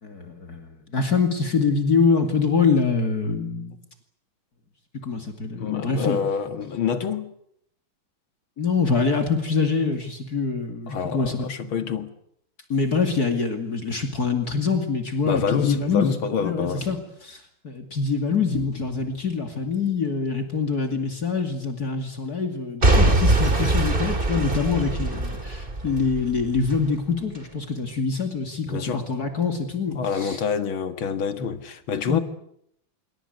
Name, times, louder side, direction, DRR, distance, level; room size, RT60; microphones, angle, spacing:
voice 1, 0.0-3.7 5.0-6.2 8.6-11.5 12.7-16.1 16.4-30.4 32.1-32.2, left 4 dB, 50° left, 2.9 m, -25 dB
voice 2, 5.6-7.3 10.9-12.1 15.3-16.8 28.7-29.0 30.0-32.2, left 6 dB, 80° left, 2.6 m, -27 dB
Boom / Shatter / Crushing, 22.8-26.8 27.3-27.4, right 2 dB, 25° right, 3.0 m, -22 dB
27.5 x 23.0 x 8.1 m
omnidirectional pair, 2.2 m